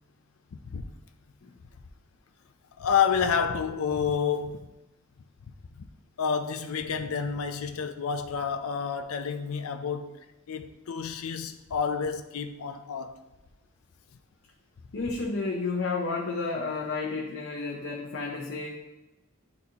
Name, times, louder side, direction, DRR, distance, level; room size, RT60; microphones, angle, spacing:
voice 1, 2.8-4.7 5.8-5.9 6.2-10.2 10.5-13.2, left 6 dB, 85° left, 0.4 m, -29 dB
voice 2, 14.9-18.8, left 3 dB, 60° left, 0.8 m, -31 dB
10.5 x 4.1 x 2.8 m
head